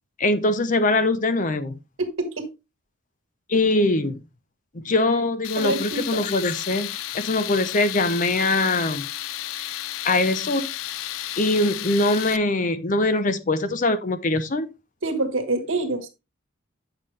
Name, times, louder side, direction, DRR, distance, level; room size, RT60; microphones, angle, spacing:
voice 1, 0.2-1.7 3.5-4.2 4.7-9.1 9.6-9.7 10.0-10.7 11.4-14.7, left 2 dB, 40° left, 0.7 m, -22 dB
voice 2, 2.0-2.5 5.5-6.2 15.0-16.1, right 2 dB, 75° right, 1.5 m, -26 dB
Tools, 5.4-12.4, left 14 dB, 80° left, 0.4 m, -32 dB
8.6 x 5.8 x 3.3 m
head